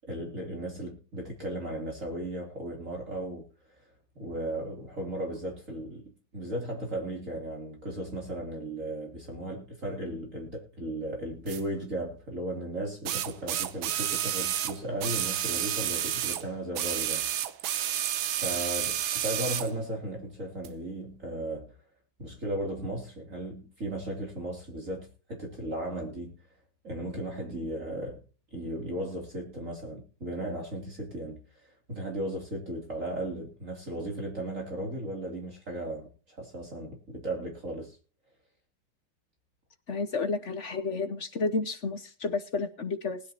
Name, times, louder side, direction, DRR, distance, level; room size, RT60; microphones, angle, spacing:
voice 1, 0.1-3.8 4.1-18.0 18.4-21.7 22.2-26.3 26.8-28.2 28.5-38.0, right 1 dB, 40° right, 3.2 m, -36 dB
sound 1, 11.5-11.6 13.1-16.4 16.7-19.7 20.6-20.7, right 11 dB, 80° right, 1.7 m, -30 dB
voice 2, 39.9-43.2, left 4 dB, 50° left, 0.9 m, -31 dB
20.0 x 10.0 x 2.8 m
omnidirectional pair, 2.2 m